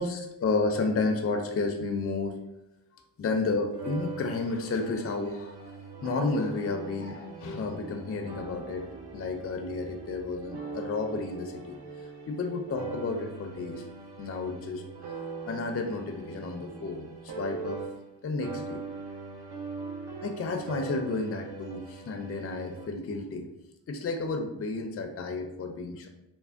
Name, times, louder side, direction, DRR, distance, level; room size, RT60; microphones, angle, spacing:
voice 1, 0.0-2.4 3.2-8.9 9.1-11.8 12.3-13.8 14.2-14.8 15.5-17.8 18.2-18.8 20.2-23.5 23.9-26.1, left 3 dB, 35° left, 5 dB, 0.4 m, -31 dB
sound 1, 3.7-18.2 18.4-22.9, right 4 dB, 60° right, 0.6 m, -41 dB
3.3 x 2.1 x 2.4 m, 0.91 s
cardioid pair, 55°, 45 cm